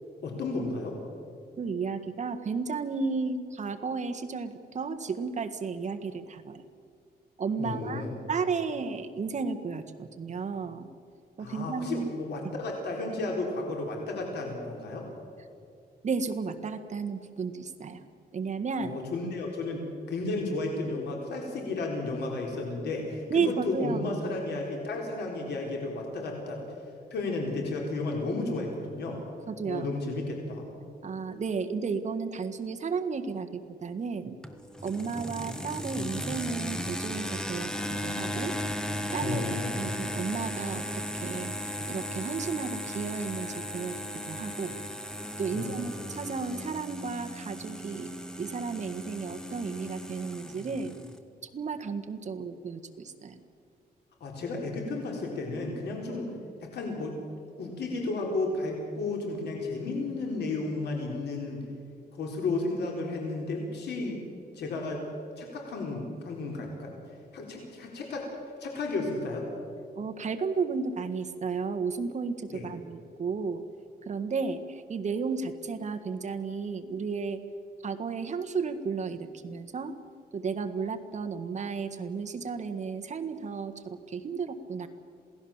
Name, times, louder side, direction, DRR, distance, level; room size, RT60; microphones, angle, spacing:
voice 1, 0.2-1.0 7.6-8.1 11.4-15.1 18.8-26.6 27.1-29.2 29.6-30.7 39.2-39.8 45.5-45.9 54.2-56.3 56.6-57.2 57.6-61.6 62.1-64.2 64.5-65.1 65.4-66.9 67.3-68.3 68.6-69.5 72.5-72.7, left 2 dB, 90° left, 0 dB, 4.2 m, -33 dB
voice 2, 1.6-6.6 7.4-10.9 11.4-12.1 16.0-18.0 18.3-19.0 23.3-24.1 29.5-29.9 31.0-34.3 34.8-38.5 39.1-40.8 41.1-41.5 41.9-44.0 44.3-44.8 45.4-48.1 48.4-50.9 51.5-53.4 70.0-73.6 74.0-77.4 77.8-79.9 80.3-84.9, right 5 dB, 45° right, 6 dB, 1.6 m, -33 dB
sound 1, 34.4-51.2, equal, 5° left, 1.4 m, -36 dB
27.5 x 18.0 x 7.3 m, 2.4 s
wide cardioid pair, 135°, 17 cm